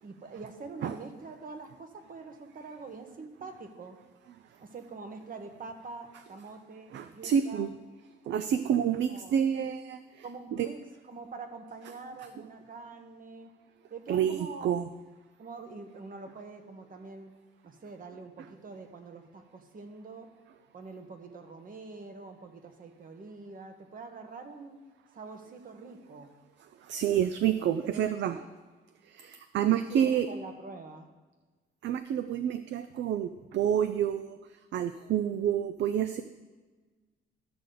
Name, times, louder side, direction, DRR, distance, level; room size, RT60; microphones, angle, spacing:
voice 1, 0.0-4.0 4.6-7.7 9.1-9.4 10.2-13.5 13.9-14.7 15.4-17.3 17.6-20.3 20.7-24.8 25.1-26.3 27.9-28.5 29.9-31.1, right 4 dB, 45° right, 6 dB, 1.3 m, -45 dB
voice 2, 6.9-7.7 8.3-10.0 10.5-10.7 14.1-14.9 26.8-28.4 29.1-30.3 31.8-34.4 34.7-36.2, right 9 dB, 65° right, 11 dB, 0.5 m, -28 dB
12.5 x 6.7 x 3.9 m, 1.3 s
cardioid pair, 90°, 20 cm